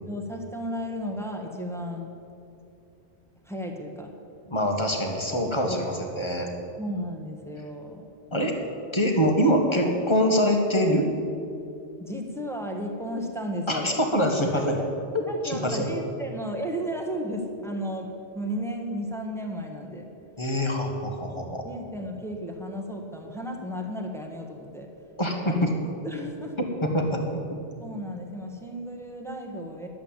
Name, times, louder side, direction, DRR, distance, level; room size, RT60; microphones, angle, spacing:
voice 1, 0.0-2.1 3.4-4.1 5.6-5.8 6.8-8.1 12.0-14.0 14.8-14.9 15.3-20.1 21.6-24.9 25.4-25.7 26.0-26.5 27.8-29.9, equal, ahead, 1 dB, 1.3 m, -34 dB
voice 2, 4.5-6.5 8.3-8.5 8.9-11.1 13.7-14.8 15.1-15.9 20.4-21.7 25.2-25.7 26.8-27.2, equal, 25° left, 2 dB, 1.5 m, -24 dB
11.0 x 7.8 x 8.9 m, 2.7 s
omnidirectional pair, 1.2 m